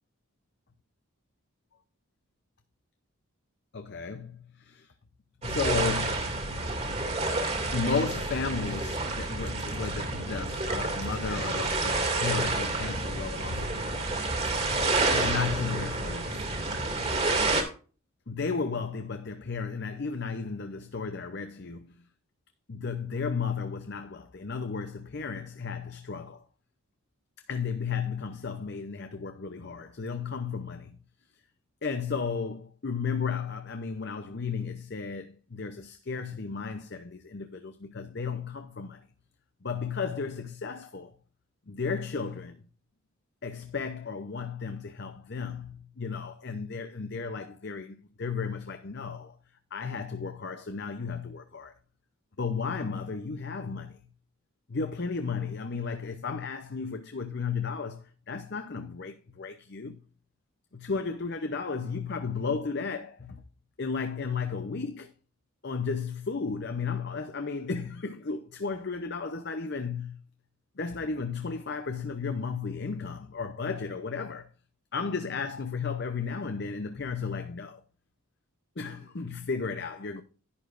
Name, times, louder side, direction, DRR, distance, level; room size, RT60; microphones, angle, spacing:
voice 1, 3.7-4.9 5.4-6.9 7.7-13.8 15.1-16.4 16.7-16.8 18.3-21.9 22.7-26.4 27.5-30.9 31.8-39.0 39.6-41.1 41.7-42.6 43.4-49.3 49.7-51.7 52.4-54.0 54.7-60.0 60.7-63.4 63.8-65.1 65.6-70.2 70.8-74.5 74.9-77.8 78.8-80.2, left 5 dB, 50° left, 0.7 m, -34 dB
sound 1, 5.4-17.6, right 2 dB, 30° right, 2.2 m, -29 dB
11.0 x 10.5 x 2.5 m
head